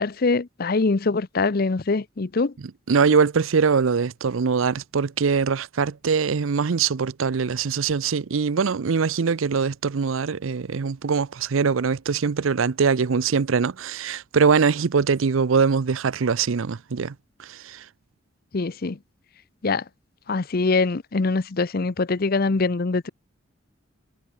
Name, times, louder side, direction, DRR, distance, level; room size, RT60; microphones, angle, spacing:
voice 1, 0.0-2.5 18.5-19.0 19.6-19.8 20.3-23.1, left 3 dB, 50° left, 0.7 m, -23 dB
voice 2, 2.9-17.1 17.4-17.8, right 5 dB, 85° right, 0.6 m, -22 dB
head